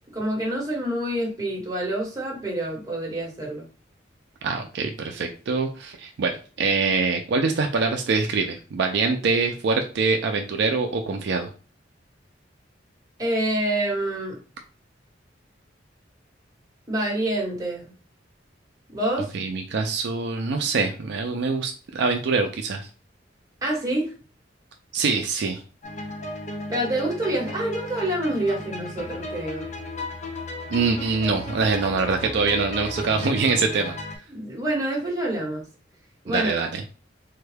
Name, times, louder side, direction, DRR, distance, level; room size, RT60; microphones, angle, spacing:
voice 1, 0.1-3.6 13.2-14.4 16.9-17.9 18.9-19.3 23.6-24.1 26.7-29.7 34.3-35.7 36.2-36.5, right 1 dB, 20° right, -2 dB, 1.1 m, -27 dB
voice 2, 4.4-11.5 19.3-22.9 24.9-25.6 30.7-34.0 36.3-36.8, right 4 dB, 65° right, 4 dB, 0.4 m, -24 dB
sound 1, 25.8-34.2, left 1 dB, 40° left, 0.6 m, -35 dB
3.6 x 2.2 x 3.3 m, 0.36 s
head